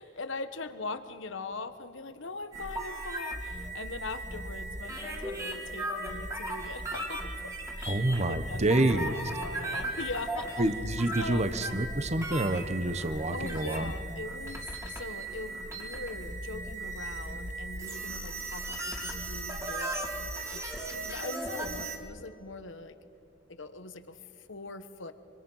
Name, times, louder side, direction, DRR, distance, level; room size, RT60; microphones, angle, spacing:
voice 1, 0.0-7.3 7.8-10.5 11.2-11.5 13.3-19.9 20.5-20.6 21.0-22.9 23.5-24.2 24.5-25.1, left 3 dB, 70° left, 11 dB, 1.3 m, -41 dB
sound 1, 2.5-22.0, right 2 dB, 15° right, 2.4 m, -37 dB
voice 2, 7.9-9.2 10.6-13.9, right 1 dB, 35° right, 12 dB, 1.0 m, -28 dB
25.0 x 25.0 x 5.6 m, 2.9 s
head